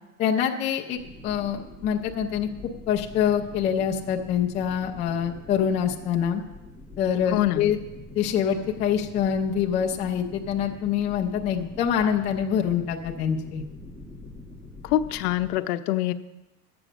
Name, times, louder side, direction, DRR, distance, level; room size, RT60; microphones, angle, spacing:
voice 1, 0.2-2.5 2.9-6.4 7.0-7.8 8.1-13.6, left 8 dB, 15° left, 1 dB, 0.4 m, -25 dB
sound 1, 0.9-15.6, left 2 dB, 10° right, 1.4 m, -44 dB
voice 2, 7.3-7.7 14.8-16.1, left 14 dB, 70° left, 10 dB, 0.7 m, -24 dB
11.0 x 7.8 x 6.1 m, 1.0 s
supercardioid pair, 150°, 48 cm